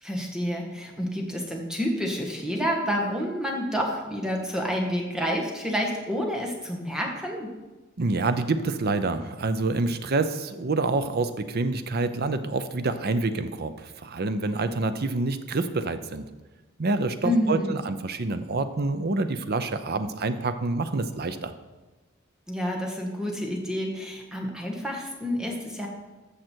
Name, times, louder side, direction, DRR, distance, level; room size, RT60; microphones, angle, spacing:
voice 1, 0.0-7.5 17.2-17.8 22.5-25.9, equal, 5° right, 0 dB, 1.6 m, -29 dB
voice 2, 8.0-16.2 16.8-21.5, right 3 dB, 50° right, 10 dB, 0.7 m, -27 dB
14.0 x 6.5 x 4.5 m, 1.2 s
head